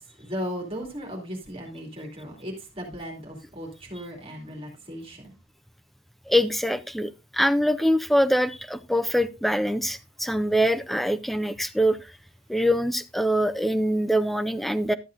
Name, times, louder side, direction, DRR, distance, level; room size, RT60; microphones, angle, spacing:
voice 1, 0.2-5.3, equal, 30° right, 2.5 m, -36 dB
voice 2, 6.3-12.0 12.5-14.9, equal, ahead, 0.4 m, -24 dB
12.0 x 7.5 x 2.5 m
head